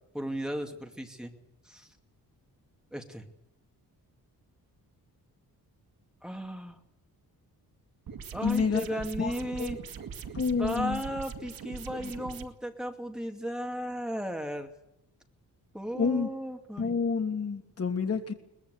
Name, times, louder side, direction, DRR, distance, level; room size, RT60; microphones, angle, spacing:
voice 1, 0.1-1.3 1.6-1.9 2.9-3.3 6.2-6.8 8.3-9.8 10.6-14.7 15.7-17.0, equal, ahead, 3 dB, 2.5 m, -35 dB
sound 1, 8.1-12.5, right 6 dB, 70° right, 2.2 m, -42 dB
voice 2, 8.4-8.9 9.2-9.3 9.6-9.7 10.3-11.0 12.0-12.1 15.9-16.3 16.8-18.3, left 5 dB, 40° left, 4 dB, 2.9 m, -28 dB
22.5 x 20.0 x 8.3 m, 0.80 s
wide cardioid pair, 145°, 37 cm